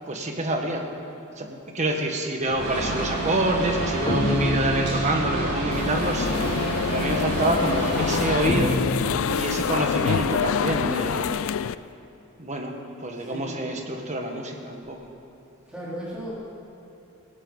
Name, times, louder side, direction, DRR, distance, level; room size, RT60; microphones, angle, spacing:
voice 1, 0.1-0.8 1.4-11.5 12.4-15.1, right 1 dB, 35° right, 2 dB, 1.6 m, -27 dB
sound 1, 2.5-5.7 6.8-10.1, left 1 dB, 35° left, 1.1 m, -30 dB
sound 2, 2.6-8.4, right 2 dB, 50° right, 4.6 m, -29 dB
sound 3, 5.7-11.7, left 7 dB, 65° left, 0.4 m, -26 dB
voice 2, 13.1-13.6 15.7-16.3, equal, 5° right, -8 dB, 3.5 m, -36 dB
18.5 x 17.5 x 4.1 m, 2.9 s
head